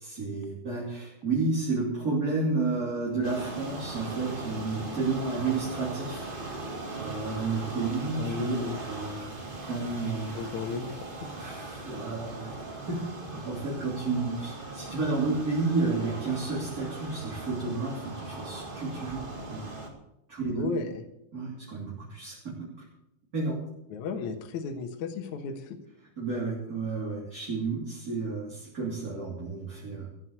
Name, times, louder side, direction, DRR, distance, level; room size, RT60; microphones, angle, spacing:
voice 1, 0.0-6.3 7.0-8.5 8.9-9.4 9.6-10.3 11.3-12.6 12.9-13.0 13.3-19.6 20.3-20.7 21.3-22.5 23.3-23.6 26.2-30.1, right 3 dB, 25° right, -5 dB, 3.1 m, -31 dB
sound 1, 3.2-19.9, right 2 dB, 90° right, 0.4 m, -39 dB
voice 2, 8.2-8.8 10.3-11.0 20.6-20.9 23.9-25.6, left 5 dB, 60° left, 5 dB, 2.3 m, -33 dB
15.0 x 8.0 x 8.1 m, 0.83 s
omnidirectional pair, 4.6 m